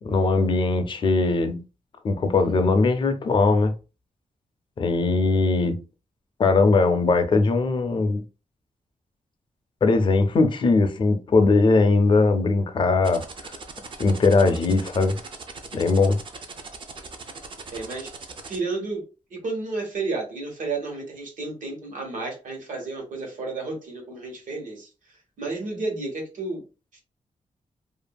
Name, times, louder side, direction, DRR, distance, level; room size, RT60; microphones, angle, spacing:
voice 1, 0.0-1.6 2.0-3.7 4.8-5.8 6.4-8.2 9.8-13.2 14.0-15.1 15.7-16.2, left 3 dB, 40° left, 0.4 m, -20 dB
sound 1, 13.0-18.6, right 4 dB, 40° right, 0.4 m, -39 dB
voice 2, 17.7-19.0 19.3-24.9 25.4-26.6 26.9-27.0, right 3 dB, 75° right, 1.1 m, -32 dB
2.7 x 2.5 x 2.2 m
wide cardioid pair, 170°, 13 cm